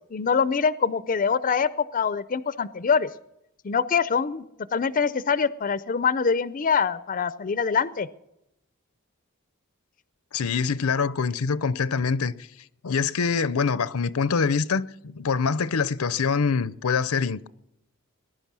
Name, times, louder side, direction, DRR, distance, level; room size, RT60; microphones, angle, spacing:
voice 1, 0.1-3.1 3.6-4.5 4.7-8.1, left 6 dB, 40° left, 0.5 m, -24 dB
voice 2, 10.3-12.3 12.8-17.5, left 5 dB, 80° left, 0.6 m, -25 dB
20.5 x 11.0 x 6.1 m
head